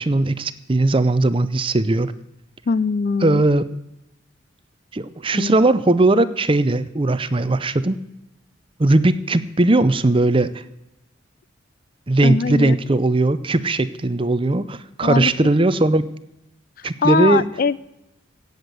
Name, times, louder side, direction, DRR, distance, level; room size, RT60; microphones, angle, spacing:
voice 1, 0.0-2.1 3.2-3.6 4.9-8.0 8.8-10.6 12.1-16.0 16.8-17.5, right 2 dB, 25° right, 13 dB, 0.6 m, -18 dB
voice 2, 2.7-3.4 5.3-5.6 12.2-12.8 15.0-15.3 17.0-17.8, left 5 dB, 45° left, 19 dB, 0.4 m, -21 dB
16.5 x 8.0 x 6.8 m, 0.90 s
head